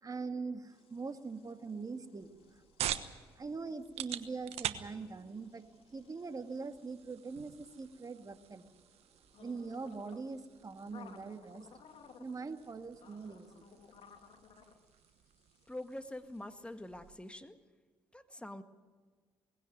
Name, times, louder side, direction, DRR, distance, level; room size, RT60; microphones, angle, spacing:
voice 1, 0.0-2.6 3.3-5.6 5.9-8.7 9.4-11.7 12.2-13.7, right 4 dB, 35° right, 7 dB, 2.1 m, -42 dB
sound 1, 0.7-17.4, left 6 dB, 60° left, 2.4 m, -61 dB
sound 2, 2.2-17.3, right 11 dB, 70° right, 1.2 m, -46 dB
voice 2, 15.7-17.6 18.1-18.6, left 1 dB, 10° left, 8 dB, 1.9 m, -45 dB
20.0 x 16.5 x 9.7 m, 1.5 s
hypercardioid pair, 55°, 11 cm